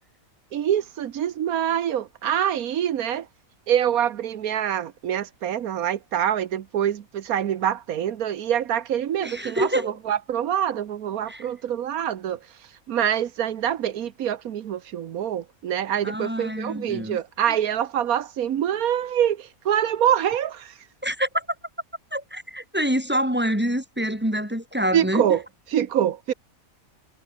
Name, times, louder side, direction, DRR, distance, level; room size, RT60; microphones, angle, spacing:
voice 1, 0.5-3.3 3.7-12.4 12.9-20.7 24.9-25.4 25.7-26.3, right 10 dB, 85° right, 1.4 m, -25 dB
voice 2, 9.2-9.9 11.3-11.4 16.0-17.2 21.0-21.4 22.1-25.2, equal, 5° right, 6.4 m, -26 dB
omnidirectional pair, 1.5 m